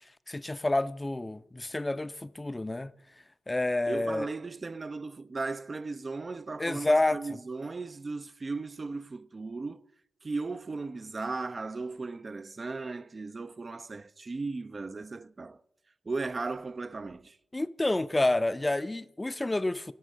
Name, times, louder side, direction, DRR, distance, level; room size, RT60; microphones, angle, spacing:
voice 1, 0.3-2.9 3.5-4.3 6.6-7.4 17.5-19.9, left 2 dB, 20° left, 0.4 m, -29 dB
voice 2, 3.9-9.8 10.2-15.6 16.1-17.4, right 3 dB, 40° right, 0.3 m, -36 dB
10.0 x 5.5 x 6.2 m
supercardioid pair, 45°, 0 cm